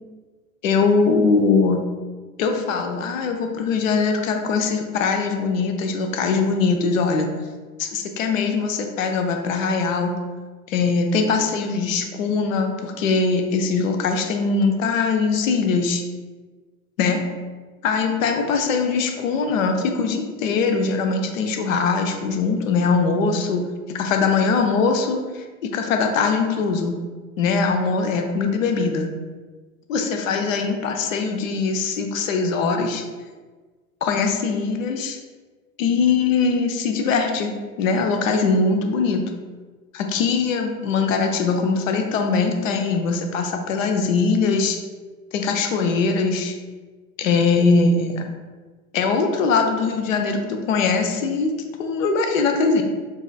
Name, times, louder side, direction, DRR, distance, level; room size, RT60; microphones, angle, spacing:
voice 1, 0.6-1.8 2.4-7.3 7.8-10.2 10.7-16.0 17.0-17.2 17.8-27.0 27.4-29.1 29.9-33.0 34.0-35.2 35.8-37.5 37.8-39.3 39.9-44.8 45.3-46.5 47.2-48.3 48.9-51.5 51.8-52.8, left 4 dB, 60° left, 4 dB, 0.7 m, -21 dB
4.6 x 4.1 x 2.3 m, 1.4 s
figure-of-eight pair, 80°, 44 cm